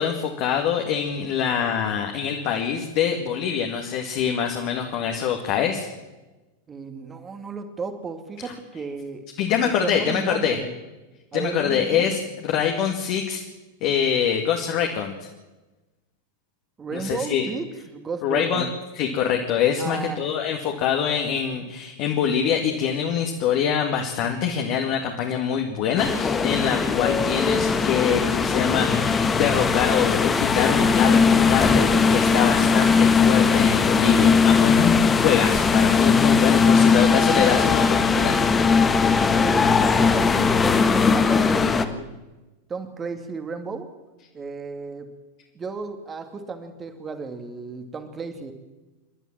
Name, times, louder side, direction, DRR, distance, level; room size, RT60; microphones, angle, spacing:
voice 1, 0.0-5.9 8.4-8.5 9.4-10.6 11.3-13.4 13.8-15.3 16.9-17.5 18.2-18.6 19.0-38.4, left 8 dB, 40° left, 2 dB, 2.2 m, -24 dB
voice 2, 6.7-9.3 9.6-10.7 11.3-12.1 16.8-18.7 19.8-20.2 39.3-42.1 42.7-43.9 44.3-45.1 45.5-48.5, right 4 dB, 20° right, 7 dB, 2.2 m, -33 dB
sound 1, 26.0-41.8, left 5 dB, 15° left, 1.4 m, -19 dB
28.5 x 12.5 x 7.5 m, 1.1 s
figure-of-eight pair, 90°, 0 cm